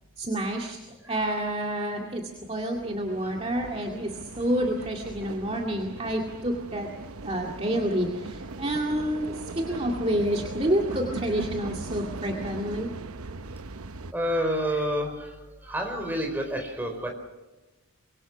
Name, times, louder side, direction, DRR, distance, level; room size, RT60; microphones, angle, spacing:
voice 1, 0.2-0.8 1.1-6.9 7.2-12.9, right 1 dB, 30° right, 0 dB, 2.2 m, -28 dB
sound 1, 2.2-14.1, right 3 dB, 85° right, 0.9 m, -39 dB
voice 2, 14.1-15.1 15.7-17.1, equal, 10° right, 3 dB, 4.6 m, -28 dB
25.5 x 23.0 x 6.2 m, 1.1 s
head